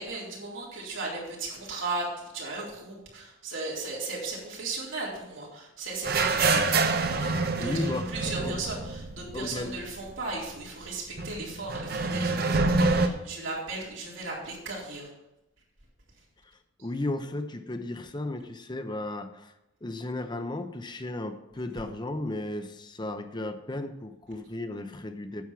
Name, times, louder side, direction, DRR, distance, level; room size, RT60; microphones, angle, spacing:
voice 1, 0.0-6.8 7.4-15.1, right 3 dB, 80° right, -4 dB, 3.8 m, -36 dB
sound 1, 6.0-9.8 10.1-10.2 11.2-13.1, right 3 dB, 50° right, 0.9 m, -26 dB
voice 2, 7.6-8.1 8.4-8.6 9.3-9.7 16.4-16.5 16.8-19.5 19.8-25.4, left 2 dB, 20° left, 8 dB, 0.7 m, -34 dB
9.5 x 7.4 x 5.9 m, 0.92 s
head